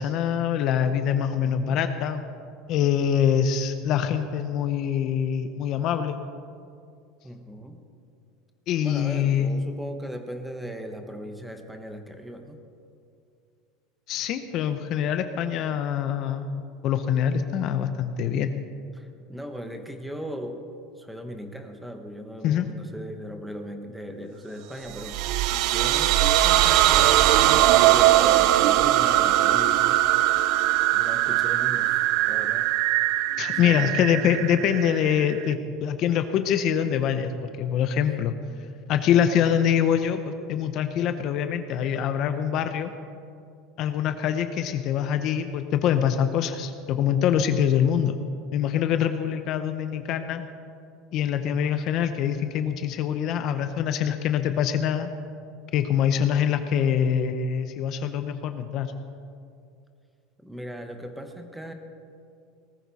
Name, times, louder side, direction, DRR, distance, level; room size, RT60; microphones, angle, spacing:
voice 1, 0.0-2.2 2.7-6.2 8.7-9.5 14.1-18.5 22.4-22.7 33.4-38.3 38.9-42.9 43.8-48.2 48.5-50.4 51.1-55.1 55.7-58.9, left 9 dB, 40° left, 9 dB, 0.6 m, -24 dB
voice 2, 1.4-1.8 7.2-7.8 8.8-12.6 18.9-20.7 21.0-30.0 30.5-32.7 33.6-34.0 39.4-39.7 60.4-61.7, equal, 5° right, 6 dB, 0.9 m, -38 dB
sound 1, 24.9-35.5, right 14 dB, 50° right, 0.4 m, -21 dB
19.0 x 14.0 x 4.1 m, 2.4 s
cardioid pair, 170°, 0 cm